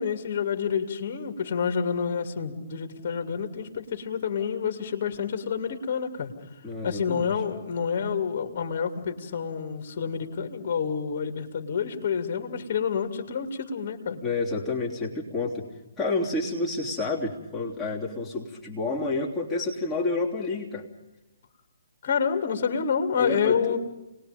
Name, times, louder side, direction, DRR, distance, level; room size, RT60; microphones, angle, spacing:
voice 1, 0.0-6.3 6.8-14.2 22.0-23.8, left 6 dB, 45° left, 5 dB, 2.7 m, -28 dB
voice 2, 6.6-7.3 14.2-15.7 16.0-20.9 23.2-23.6, left 3 dB, 10° left, -5 dB, 3.3 m, -29 dB
29.5 x 20.5 x 5.3 m, 0.97 s
figure-of-eight pair, 135°, 0 cm